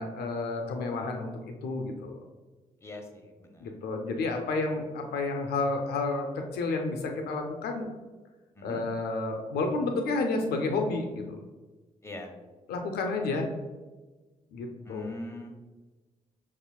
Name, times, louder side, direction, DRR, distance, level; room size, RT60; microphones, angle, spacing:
voice 1, 0.0-1.3 1.6-2.2 3.6-7.9 8.6-11.4 12.7-13.5 14.5-15.1, left 3 dB, 85° left, 4 dB, 0.5 m, -31 dB
voice 2, 2.8-3.7 8.6-8.8 12.0-12.3 14.8-15.5, left 1 dB, 15° left, 3 dB, 0.8 m, -42 dB
6.5 x 2.4 x 2.2 m, 1.2 s
supercardioid pair, 50°, 16 cm